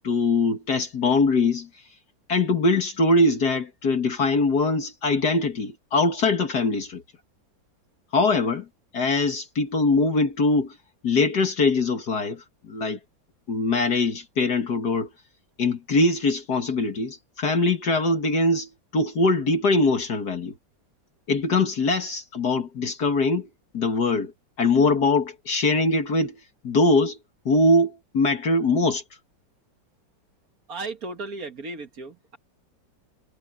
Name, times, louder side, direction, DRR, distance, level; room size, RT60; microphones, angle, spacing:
voice 1, 0.0-1.7 2.3-7.0 8.1-8.7 8.9-10.8 11.0-13.0 13.5-15.1 15.6-20.5 21.3-23.5 23.7-24.3 24.6-26.4 26.6-27.2 27.5-29.0, left 3 dB, 60° left, 2.3 m, -22 dB
voice 2, 30.7-32.4, right 3 dB, 50° right, 2.0 m, -35 dB
omnidirectional pair, 2.0 m